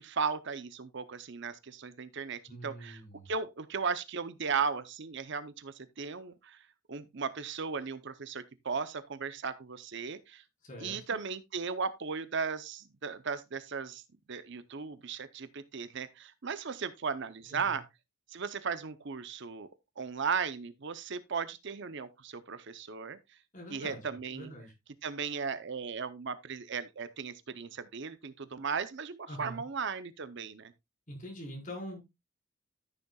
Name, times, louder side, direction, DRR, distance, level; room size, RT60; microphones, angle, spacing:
voice 1, 0.0-3.0 3.3-6.6 6.9-10.4 10.8-14.0 14.3-17.8 18.3-19.7 20.0-23.2 23.7-24.5 25.0-30.7, right 5 dB, 55° right, 0.7 m, -36 dB
voice 2, 2.5-3.3 10.6-11.0 17.5-17.8 23.5-24.7 29.3-29.6 31.1-32.0, equal, 35° left, 4.7 m, -44 dB
13.5 x 6.8 x 2.3 m
head